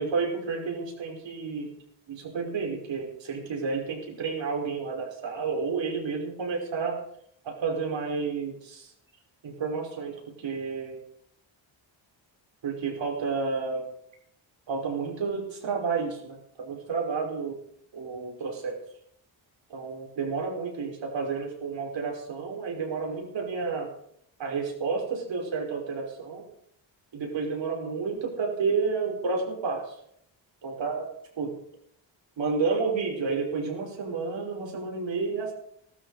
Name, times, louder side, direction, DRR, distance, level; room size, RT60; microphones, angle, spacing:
voice 1, 0.0-1.7 2.1-7.0 7.4-8.9 9.4-11.0 12.6-13.9 14.7-17.6 17.9-18.8 19.7-23.9 24.4-26.4 27.1-29.9 30.6-31.1 31.4-31.5 32.4-35.5, right 4 dB, 70° right, 1 dB, 5.2 m, -31 dB
18.5 x 12.5 x 4.9 m, 0.69 s
wide cardioid pair, 125°, 47 cm